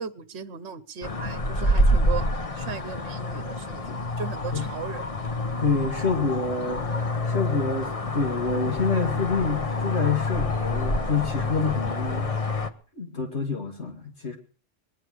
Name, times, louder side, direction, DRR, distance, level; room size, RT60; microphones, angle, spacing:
voice 1, 0.0-2.3 2.6-5.2, right 7 dB, 65° right, 12 dB, 1.2 m, -37 dB
Traffic on Beith Road - Barrmill North Ayrshire, 1.0-12.7, left 1 dB, 30° left, 1.0 m, -27 dB
voice 2, 5.6-6.9 7.3-12.3 13.0-14.4, left 4 dB, 65° left, 3 dB, 2.6 m, -27 dB
20.5 x 10.5 x 6.4 m, 0.42 s
omnidirectional pair, 1.3 m